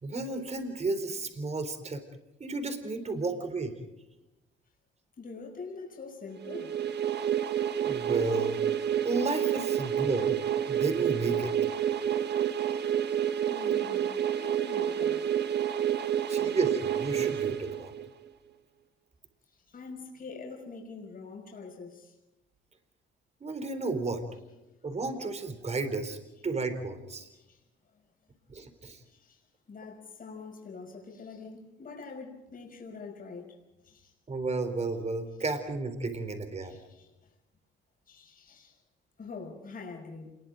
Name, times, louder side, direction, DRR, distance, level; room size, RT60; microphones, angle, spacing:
voice 1, 0.0-2.0 2.4-3.7 7.8-8.6 9.0-10.4 10.7-11.6 16.3-17.9 23.4-24.2 24.8-26.2 26.4-27.3 28.5-29.0 34.3-36.8, right 3 dB, 35° right, 4.0 m, -32 dB
voice 2, 5.2-6.8 12.6-12.9 13.4-15.3 16.0-16.5 19.5-22.2 27.3-27.6 29.0-29.4 29.7-33.6 33.8-34.1 36.6-37.3 38.1-38.8 39.2-40.4, left 4 dB, 45° left, 6.0 m, -45 dB
sound 1, 6.4-18.2, right 9 dB, 60° right, 1.4 m, -29 dB
27.5 x 22.0 x 5.1 m
cardioid pair, 90°, 20 cm